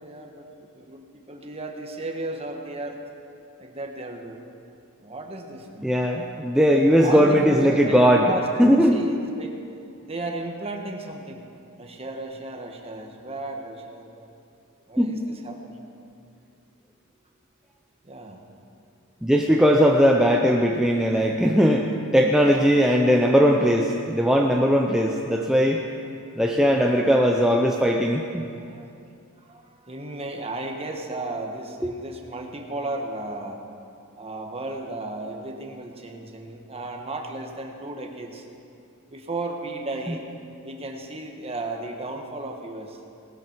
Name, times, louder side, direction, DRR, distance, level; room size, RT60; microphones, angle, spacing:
voice 1, 0.0-3.0 3.6-4.4 5.0-6.0 7.0-9.6 10.0-11.4 11.8-14.3 14.9-15.9 18.0-18.4 28.7-28.9 29.4-33.6 34.2-38.5 39.1-40.3 40.6-43.0, right 2 dB, 30° right, 2 dB, 1.4 m, -34 dB
voice 2, 5.8-8.2 8.6-9.0 15.0-15.3 19.2-21.9 22.1-25.8 26.4-28.5, equal, 5° right, 0 dB, 0.6 m, -19 dB
19.0 x 13.0 x 4.6 m, 2.5 s
head